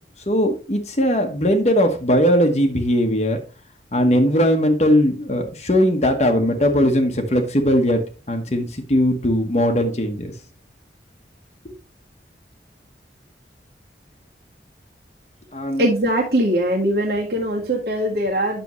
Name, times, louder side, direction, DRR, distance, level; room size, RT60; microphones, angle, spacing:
voice 1, 0.3-3.4 3.9-8.0 8.3-10.3 11.6-11.7 15.5-15.8, equal, 40° left, 4 dB, 1.2 m, -19 dB
voice 2, 15.8-18.6, right 1 dB, 60° right, -2 dB, 1.7 m, -21 dB
9.6 x 6.8 x 3.1 m, 0.34 s
head